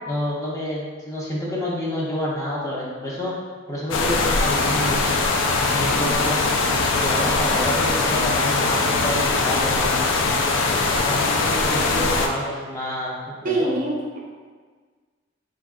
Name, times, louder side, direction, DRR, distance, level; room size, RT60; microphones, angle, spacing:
voice 1, 0.1-3.3 3.7-5.0 5.7-10.0 11.1-13.7, left 1 dB, 15° left, -5 dB, 0.6 m, -28 dB
sound 1, 3.9-12.3, left 3 dB, 75° left, 0.4 m, -21 dB
voice 2, 13.4-14.2, right 2 dB, 45° right, -2 dB, 0.6 m, -24 dB
3.6 x 3.6 x 2.3 m, 1.5 s
head